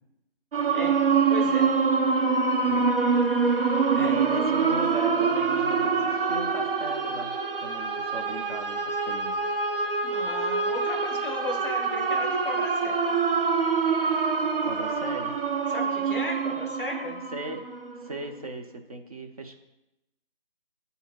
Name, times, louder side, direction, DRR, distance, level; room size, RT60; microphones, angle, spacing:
sound 1, 0.5-18.2, right 5 dB, 70° right, 0.8 m, -25 dB
voice 1, 1.3-1.7 3.9-4.2 10.0-13.2 15.7-17.2, left 2 dB, 10° right, -7 dB, 0.6 m, -35 dB
voice 2, 2.7-3.0 3.9-9.4 14.6-15.4 17.3-17.7 18.0-19.6, right 2 dB, 40° right, 4 dB, 0.7 m, -37 dB
8.2 x 2.8 x 5.9 m, 0.92 s
figure-of-eight pair, 165°, 29 cm